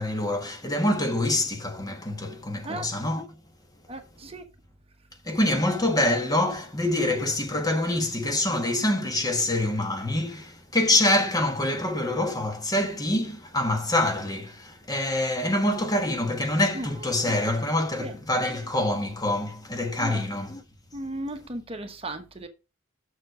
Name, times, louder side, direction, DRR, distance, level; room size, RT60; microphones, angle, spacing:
voice 1, 0.0-3.3 5.2-20.6, left 1 dB, 20° left, 1.2 m, -25 dB
voice 2, 3.9-4.4 16.7-17.1 18.0-18.2 20.0-20.2 20.9-22.5, right 1 dB, 30° right, 1.0 m, -36 dB
7.2 x 6.6 x 4.8 m
head